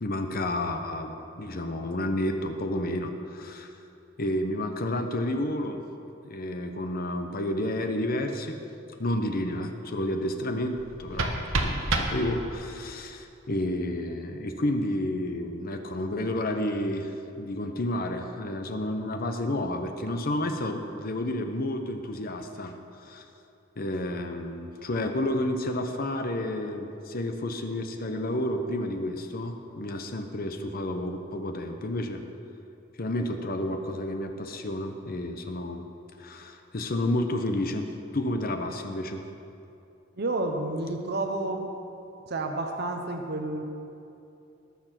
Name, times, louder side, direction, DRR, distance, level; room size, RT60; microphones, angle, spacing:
voice 1, 0.0-3.7 4.2-5.8 6.2-8.6 9.0-17.1 17.4-23.2 23.8-32.2 33.0-35.9 36.2-39.2, left 1 dB, 50° left, 6 dB, 0.9 m, -30 dB
sound 1, 10.7-12.8, right 2 dB, 90° right, 1.2 m, -29 dB
voice 2, 40.2-41.7 42.3-43.6, right 2 dB, 55° right, 4 dB, 1.0 m, -30 dB
19.0 x 6.9 x 5.9 m, 2.7 s
head